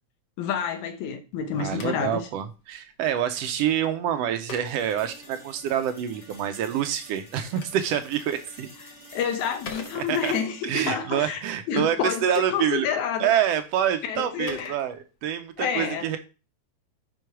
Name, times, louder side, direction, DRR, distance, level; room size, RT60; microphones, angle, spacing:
voice 1, 0.4-2.2 9.1-11.4 11.7-13.4 14.0-14.8 15.6-16.1, left 7 dB, 80° left, 2.1 m, -29 dB
Telephone, 1.3-5.8 7.1-10.5 11.9-15.5, left 4 dB, 65° left, 1.0 m, -47 dB
voice 2, 1.6-8.7 9.9-10.3 10.6-12.9 13.2-16.2, right 10 dB, 80° right, 1.5 m, -27 dB
sound 1, 4.7-12.7, equal, 20° left, 0.8 m, -50 dB
6.1 x 5.3 x 4.6 m
omnidirectional pair, 3.4 m